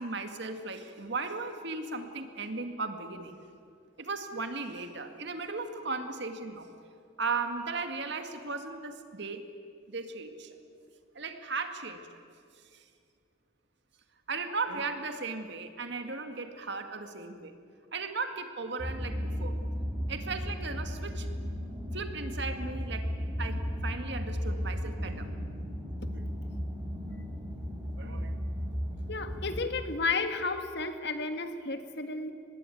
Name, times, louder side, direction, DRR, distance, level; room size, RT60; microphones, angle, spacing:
voice 1, 0.0-3.5 4.0-6.7 7.2-9.4 9.9-10.5 11.1-12.0 12.7-12.8 14.3-17.5 17.9-19.5 20.1-21.3 21.9-23.1 23.4-25.3 26.1-26.2 28.0-28.3, right 4 dB, 60° right, 7 dB, 2.1 m, -36 dB
sound 1, 18.8-29.6, equal, 10° right, 4.9 m, -35 dB
voice 2, 29.1-32.3, left 3 dB, 60° left, 8 dB, 1.8 m, -32 dB
24.5 x 20.5 x 9.3 m, 2.3 s
head